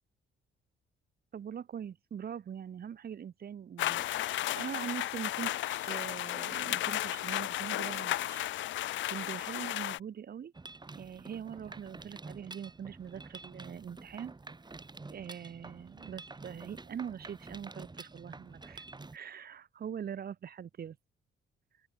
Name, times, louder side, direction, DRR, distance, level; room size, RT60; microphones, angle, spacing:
voice 1, 1.3-8.4 9.1-10.5 11.0-14.3 15.1-18.8 19.1-21.0, right 8 dB, 50° right, 1.6 m, -42 dB
sound 1, 3.8-10.0, left 14 dB, 75° left, 0.6 m, -34 dB
Mechanisms, 10.5-19.2, right 3 dB, 20° right, 5.8 m, -48 dB
open air
cardioid pair, 90°, 20 cm